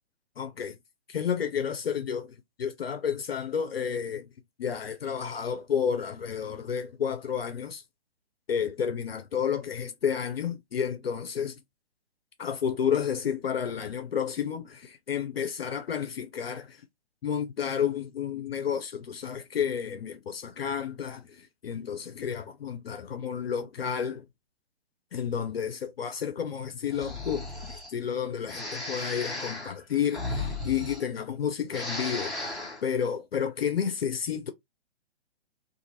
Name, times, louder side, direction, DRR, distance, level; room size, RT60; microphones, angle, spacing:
voice 1, 0.4-0.8 1.1-4.3 4.6-7.8 8.5-11.6 12.4-16.8 17.2-24.3 25.1-34.5, left 8 dB, 65° left, 0.5 m, -31 dB
Breathing, 26.9-27.9 28.5-31.4 31.7-32.8, left 2 dB, ahead, 0.7 m, -35 dB
2.6 x 2.5 x 2.8 m
figure-of-eight pair, 125°, 32 cm